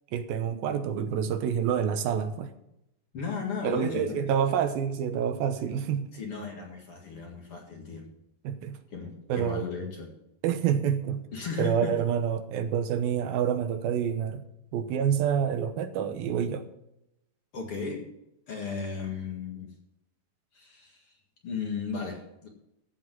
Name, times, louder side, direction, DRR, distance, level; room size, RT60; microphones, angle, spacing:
voice 1, 0.1-2.5 3.6-6.1 8.4-8.8 9.3-9.6 10.4-11.3 11.6-14.4 14.7-16.6, right 8 dB, 80° right, 9 dB, 2.7 m, -27 dB
voice 2, 3.1-4.3 6.1-8.1 8.9-10.2 11.3-12.0 17.5-18.1 18.5-19.7 20.5-21.1 21.4-22.5, left 5 dB, 45° left, 1 dB, 2.3 m, -35 dB
14.5 x 5.4 x 7.5 m, 0.85 s
omnidirectional pair, 4.1 m